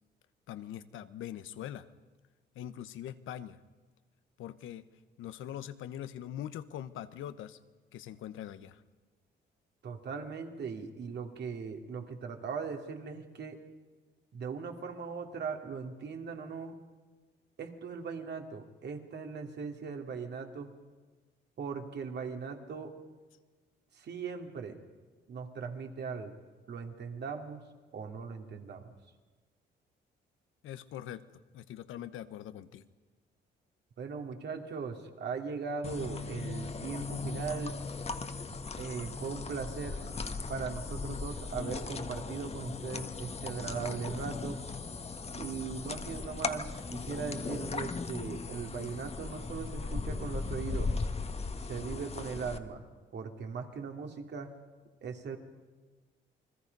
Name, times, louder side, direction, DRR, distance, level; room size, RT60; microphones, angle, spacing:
voice 1, 0.5-1.9 2.5-3.6 4.4-4.9 5.2-7.6 7.9-8.8 30.6-31.3 31.5-32.8, left 11 dB, 85° left, 13 dB, 1.0 m, -42 dB
voice 2, 9.8-13.6 14.3-16.8 17.6-20.7 21.6-22.9 23.9-24.8 25.3-26.3 26.7-27.6 27.9-28.9 34.0-37.8 38.8-40.0 40.5-44.6 45.3-50.9 51.7-52.8 53.1-54.5 55.0-55.4, right 5 dB, 60° right, 4 dB, 2.8 m, -39 dB
sound 1, 35.8-52.6, left 4 dB, 30° left, 1.4 m, -38 dB
29.0 x 21.0 x 5.4 m, 1.3 s
cardioid pair, 90°, 20 cm